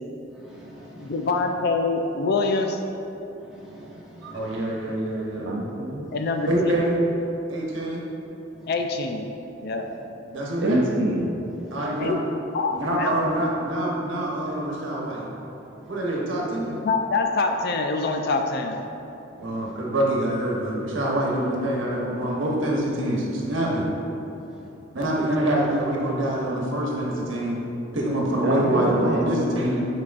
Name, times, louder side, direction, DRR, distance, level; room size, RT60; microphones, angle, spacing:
voice 1, 0.2-1.4 3.3-4.7 6.0-6.5 8.5-8.9 9.8-10.0 10.4-10.6 11.6-12.1 15.8-16.0 19.3-19.8 24.4-24.7, equal, 5° right, -9 dB, 1.3 m, -48 dB
voice 2, 1.0-2.8 4.9-5.0 6.1-6.8 8.7-9.3 9.6-9.9 12.0-12.2 12.5-13.2 16.3-18.8, left 3 dB, 55° left, 4 dB, 0.4 m, -25 dB
voice 3, 4.3-5.5 6.5-7.0 7.5-8.0 10.3-10.8 11.7-12.1 12.7-15.3 15.9-16.8 19.4-23.8 24.9-27.6 27.9-29.8, right 1 dB, 85° right, -3 dB, 1.1 m, -25 dB
voice 4, 5.4-6.1 10.6-11.4 28.4-29.2, right 1 dB, 60° right, 0 dB, 0.6 m, -25 dB
8.4 x 4.6 x 2.5 m, 2.9 s
head